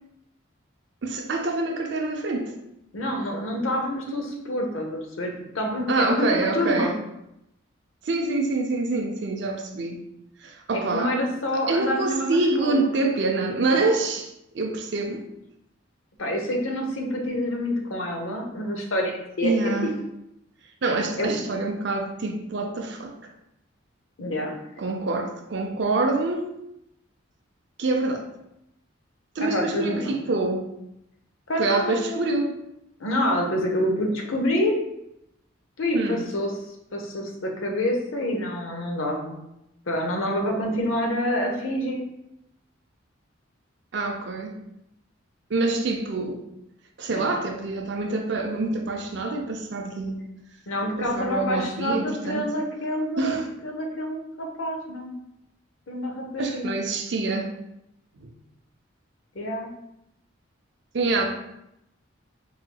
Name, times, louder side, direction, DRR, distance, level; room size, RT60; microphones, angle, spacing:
voice 1, 1.0-2.5 5.9-7.0 8.0-10.0 10.4-11.1 11.5-14.3 14.5-15.3 19.4-20.0 20.8-23.3 24.8-26.5 27.8-28.3 29.4-30.7 31.6-32.5 35.9-36.3 43.9-44.6 45.5-46.4 47.0-50.2 51.0-52.5 53.2-53.5 56.4-57.5 58.2-58.3 60.9-61.3, right 3 dB, 55° right, 3 dB, 0.5 m, -26 dB
voice 2, 2.9-6.9 10.7-12.9 16.2-19.7 21.2-21.3 24.2-24.5 29.4-30.2 31.5-32.4 33.0-34.8 35.8-36.5 36.9-39.4 39.9-42.0 47.1-47.3 50.7-55.1 55.9-56.8 59.3-59.7, left 1 dB, 80° left, 1 dB, 0.8 m, -27 dB
4.8 x 3.1 x 2.2 m, 0.83 s
head